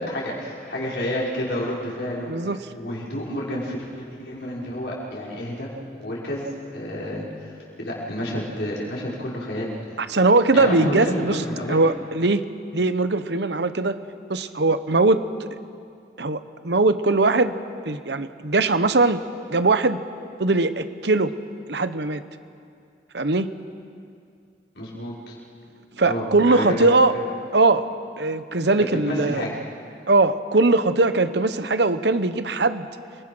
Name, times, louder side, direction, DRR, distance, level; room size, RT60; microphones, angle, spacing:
voice 1, 0.0-2.3 2.7-5.7 6.0-6.5 6.7-7.5 7.8-10.0 10.5-11.8 24.8-25.4 26.1-26.9 28.8-29.6, left 1 dB, 75° left, -5 dB, 5.7 m, -30 dB
voice 2, 2.3-2.6 10.0-11.4 11.7-12.4 12.7-14.0 14.3-15.2 16.2-17.5 17.9-19.2 19.5-20.0 20.4-21.3 21.7-22.2 23.1-23.5 26.0-27.2 27.5-29.4 30.1-32.9, right 3 dB, 75° right, 11 dB, 1.0 m, -20 dB
29.0 x 20.5 x 6.3 m, 2.4 s
head